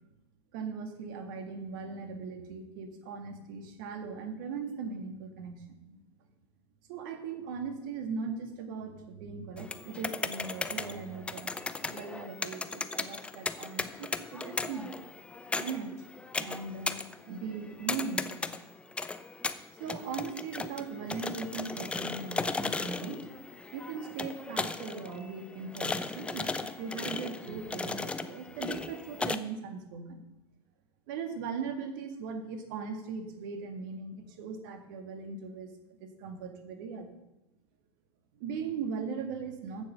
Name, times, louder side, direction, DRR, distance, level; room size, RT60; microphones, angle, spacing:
voice 1, 0.5-6.0 6.9-11.5 11.8-14.9 15.6-16.1 16.4-18.5 19.8-23.3 23.7-30.2 31.1-37.1 38.4-39.8, right 5 dB, 50° right, 6 dB, 2.0 m, -39 dB
sound 1, 9.6-29.4, left 3 dB, 10° left, 0.5 m, -37 dB
14.5 x 7.3 x 5.5 m, 0.96 s
figure-of-eight pair, 90°, 14 cm